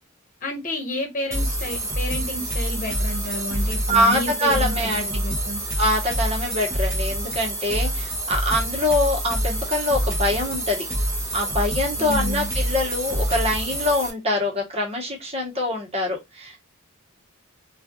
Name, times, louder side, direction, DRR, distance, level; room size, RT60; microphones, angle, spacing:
voice 1, 0.4-5.6 12.0-12.5, left 1 dB, 40° left, 1.2 m, -31 dB
sound 1, 1.3-14.1, right 1 dB, 15° right, 0.9 m, -26 dB
voice 2, 3.9-5.2 5.8-10.8 11.3-16.6, left 1 dB, 30° right, 1.1 m, -24 dB
3.3 x 2.4 x 2.3 m
head